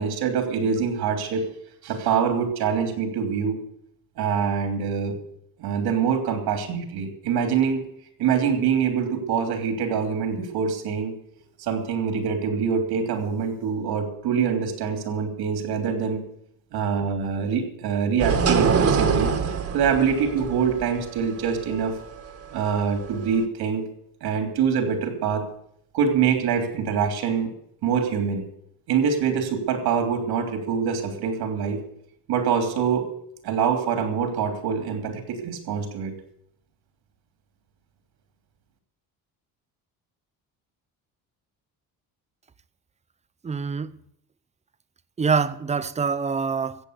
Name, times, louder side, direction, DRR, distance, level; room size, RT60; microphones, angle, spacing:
voice 1, 0.0-1.4 1.8-3.6 4.2-5.2 5.6-7.8 8.2-11.1 11.6-16.2 16.7-19.3 19.7-22.0 22.5-23.8 24.2-25.5 25.9-27.5 27.8-28.4 28.9-31.8 32.3-33.1 33.4-36.1, right 6 dB, 80° right, 3.2 m, -24 dB
sound 1, 18.2-23.4, right 6 dB, 40° right, 1.9 m, -25 dB
voice 2, 43.4-43.9 45.2-46.8, right 5 dB, 20° right, 0.6 m, -25 dB
15.0 x 8.2 x 8.3 m
cardioid pair, 135°, 37 cm